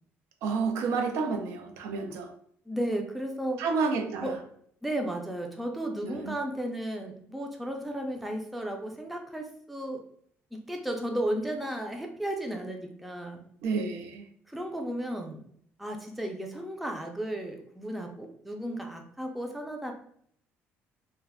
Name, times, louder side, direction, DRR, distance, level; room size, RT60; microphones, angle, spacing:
voice 1, 0.4-2.3 3.6-4.3 6.0-6.3 13.6-14.2, right 4 dB, 85° right, 5 dB, 0.5 m, -30 dB
voice 2, 2.7-3.6 4.2-4.4 4.8-10.0 10.5-13.4 14.5-15.4 15.8-19.9, right 1 dB, ahead, 2 dB, 0.3 m, -34 dB
2.4 x 2.2 x 3.4 m, 0.64 s
cardioid pair, 140°, 5 cm